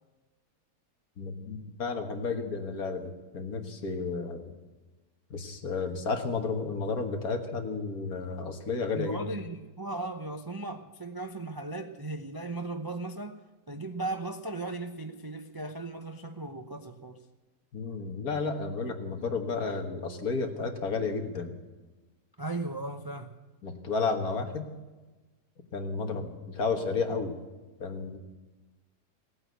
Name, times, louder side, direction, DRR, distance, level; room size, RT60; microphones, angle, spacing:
voice 1, 1.2-4.6 5.3-9.2 17.7-21.5 23.6-24.7 25.7-27.4 27.8-28.2, left 4 dB, 60° left, 5 dB, 2.0 m, -32 dB
voice 2, 8.9-13.4 13.7-17.2 22.4-23.3, right 2 dB, 35° right, 6 dB, 0.3 m, -37 dB
17.5 x 8.9 x 9.3 m, 1.2 s
omnidirectional pair, 1.8 m